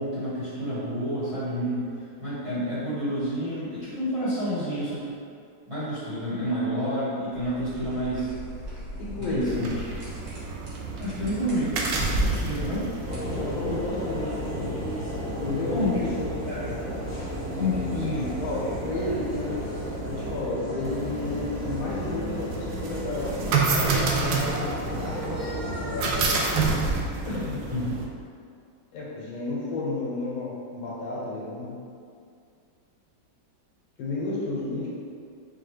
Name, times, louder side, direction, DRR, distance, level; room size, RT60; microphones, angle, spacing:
voice 1, 0.0-1.9 2.2-5.1 5.7-8.3 9.3-9.8 11.0-11.8 12.4-12.9 15.7-16.1 16.5-16.8 17.5-18.3 27.7-27.9, equal, 20° right, -14 dB, 1.3 m, -29 dB
sound 1, 7.3-14.6, equal, 55° right, 1.4 m, -42 dB
voice 2, 9.0-9.6 13.2-14.7 15.4-16.4 18.4-25.2 27.3-27.7 28.9-31.7 34.0-34.9, left 2 dB, 80° left, -6 dB, 1.7 m, -32 dB
sound 2, 9.5-28.1, right 3 dB, 75° right, 1.2 m, -30 dB
sound 3, 13.1-26.9, left 1 dB, 35° left, 1.3 m, -34 dB
5.0 x 2.3 x 3.3 m, 2.3 s
omnidirectional pair, 2.2 m